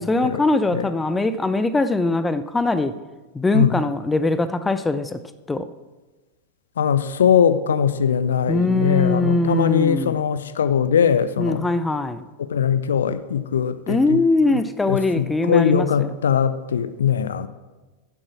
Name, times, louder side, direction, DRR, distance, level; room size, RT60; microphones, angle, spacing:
voice 1, 0.0-2.9 3.3-5.2 5.5-5.7 8.5-10.2 11.4-12.3 13.9-16.1, left 2 dB, 10° left, 13 dB, 0.6 m, -21 dB
voice 2, 6.8-11.7 12.4-14.2 14.9-17.5, left 8 dB, 65° left, 14 dB, 0.6 m, -21 dB
15.5 x 7.0 x 6.0 m, 1.2 s
figure-of-eight pair, 90°, 0 cm